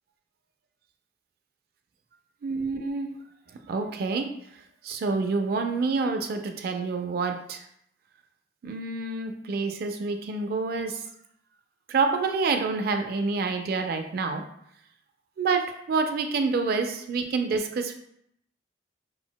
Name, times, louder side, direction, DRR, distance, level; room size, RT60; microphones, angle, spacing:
voice 1, 2.4-3.1 3.7-4.3 4.8-7.6 8.6-11.0 11.9-14.5 15.4-17.9, right 4 dB, 55° right, 6 dB, 0.3 m, -27 dB
3.9 x 2.0 x 2.2 m, 0.73 s
head